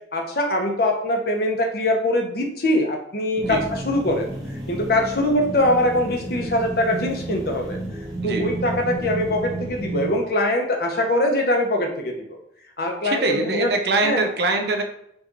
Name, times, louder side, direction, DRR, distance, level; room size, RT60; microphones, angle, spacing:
voice 1, 0.1-4.3 4.7-7.8 8.2-12.4 12.8-13.7 14.0-14.3, left 1 dB, 55° left, 2 dB, 0.8 m, -22 dB
sound 1, 3.4-10.2, right 1 dB, 15° right, 1.5 m, -31 dB
voice 2, 13.0-14.8, right 3 dB, 60° right, 4 dB, 0.6 m, -23 dB
4.7 x 2.5 x 3.9 m, 0.73 s
head